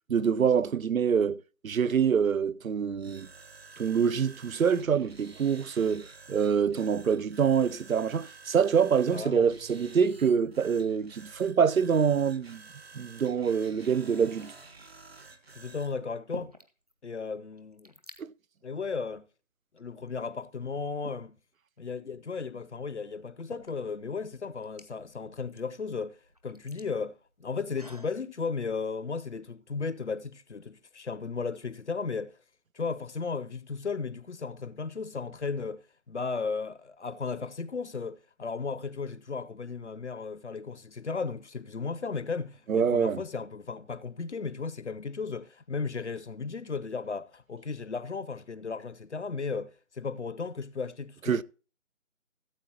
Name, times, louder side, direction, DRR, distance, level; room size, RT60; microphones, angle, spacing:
voice 1, 0.1-3.3 3.8-12.6 12.9-14.5 18.2-18.3 42.7-43.2 51.3-51.4, right 7 dB, 80° right, 0.6 m, -25 dB
sound 1, 2.9-16.0, right 4 dB, 50° right, 1.4 m, -51 dB
voice 2, 9.1-9.5 15.6-16.5 17.0-17.9 18.6-19.3 19.7-21.4 21.8-26.2 26.4-32.4 32.7-35.8 36.1-51.4, left 4 dB, 55° left, 0.7 m, -35 dB
sound 2, 14.7-15.1 15.8-16.9 17.2-17.3 17.5-18.2 19.0-19.2 19.8-20.7 22.4-22.5 23.2-28.2, equal, 30° right, 0.7 m, -50 dB
16.0 x 7.8 x 2.9 m
figure-of-eight pair, 165°, 40 cm